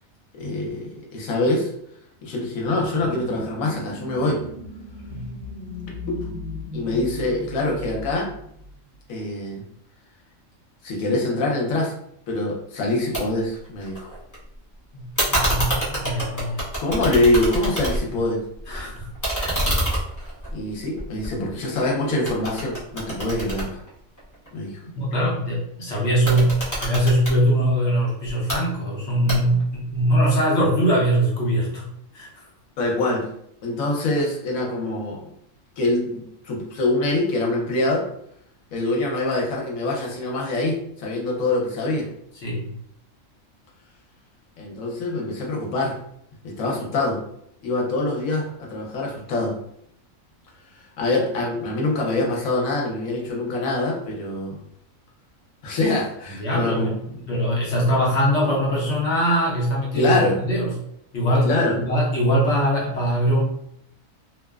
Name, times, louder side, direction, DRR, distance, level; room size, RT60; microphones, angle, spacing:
voice 1, 0.4-1.7 2.2-4.4 6.1-6.3 6.7-8.3 9.1-9.6 10.8-11.9 12.3-14.1 16.8-18.4 20.5-23.8 24.5-24.8 32.8-33.3 33.6-35.3 35.8-38.0 38.7-42.1 44.6-46.0 46.4-47.2 47.6-49.5 51.0-54.6 55.6-57.3 59.9-60.4 61.4-61.8, left 2 dB, 80° left, -1 dB, 1.2 m, -24 dB
sound 1, 2.6-9.0, left 2 dB, 45° right, 1.0 m, -36 dB
sound 2, 13.1-13.2 13.5-14.4 15.2-18.2 18.6-21.8 22.2-24.5 26.1-27.4 28.2-28.6 29.3-29.7, equal, 20° left, 0.6 m, -27 dB
voice 2, 14.9-16.6 18.7-19.1 19.4-19.6 24.9-31.9 32.1-32.4 42.4-42.7 56.4-56.9 57.3-60.2 60.5-60.7 61.1-63.4, equal, 60° left, -4 dB, 0.9 m, -22 dB
2.9 x 2.1 x 2.3 m, 0.72 s
omnidirectional pair, 1.4 m